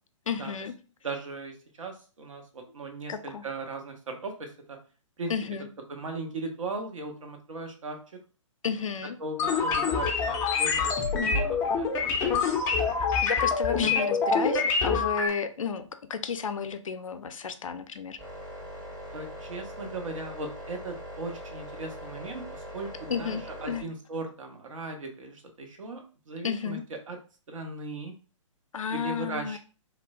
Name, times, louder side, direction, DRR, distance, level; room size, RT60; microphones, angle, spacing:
voice 1, 0.3-0.7 3.1-3.4 5.3-5.7 8.6-9.2 13.0-18.2 23.1-23.9 26.4-26.8 28.7-29.6, left 6 dB, 80° left, 9 dB, 0.4 m, -33 dB
voice 2, 1.0-4.8 5.2-5.3 5.9-8.0 9.2-11.9 12.2-12.3 12.6-12.7 13.8-14.0 14.3-14.4 19.1-27.2 27.5-28.1 28.9-29.6, right 3 dB, 70° right, 4 dB, 0.7 m, -38 dB
sound 1, 9.4-15.3, left 5 dB, 15° left, 0.3 m, -26 dB
sound 2, 18.2-23.8, equal, 25° right, 0.7 m, -41 dB
3.1 x 2.1 x 2.4 m, 0.36 s
figure-of-eight pair, 130°, 17 cm